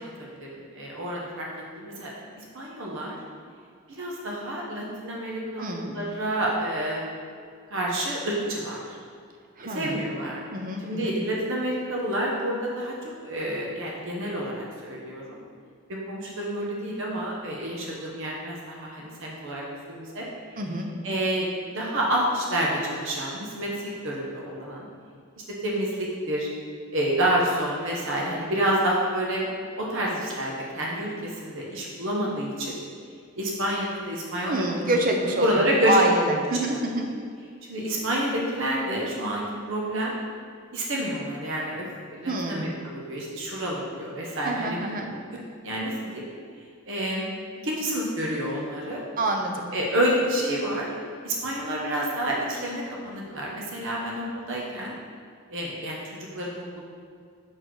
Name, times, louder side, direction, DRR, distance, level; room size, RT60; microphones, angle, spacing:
voice 1, 0.0-1.5 1.8-3.2 3.9-7.0 7.7-9.0 9.6-10.4 10.8-15.4 15.9-20.3 21.0-24.8 25.6-26.5 26.9-29.4 29.8-32.7 33.4-34.9 35.3-36.0 36.7-36.8 37.7-40.2 40.7-45.2 45.6-46.3 46.9-47.3 47.6-49.0 49.7-50.9 51.2-54.9 55.5-56.8, right 1 dB, 65° right, -3 dB, 1.0 m, -29 dB
voice 2, 5.6-5.9 9.6-10.0 10.5-11.1 20.6-20.9 34.5-37.1 42.3-42.7 44.4-45.1 49.2-49.7, right 1 dB, 40° right, 2 dB, 0.7 m, -26 dB
6.4 x 4.2 x 4.7 m, 2.2 s
head